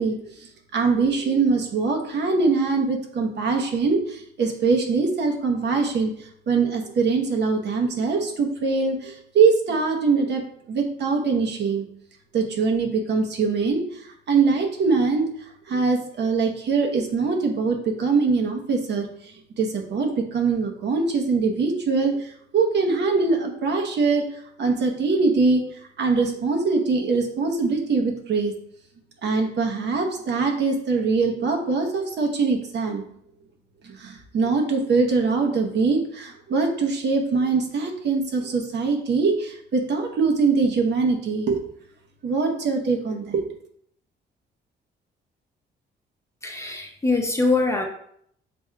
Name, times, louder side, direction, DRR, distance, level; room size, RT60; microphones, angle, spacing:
voice 1, 0.0-10.4 10.7-11.9 12.3-25.6 26.0-28.5 29.2-33.0 33.8-41.6 42.2-43.4, right 4 dB, 60° right, 2 dB, 0.9 m, -23 dB
voice 2, 46.4-47.8, left 3 dB, 15° left, 1 dB, 0.7 m, -23 dB
6.0 x 3.4 x 2.3 m, 0.68 s
cardioid pair, 90°, 20 cm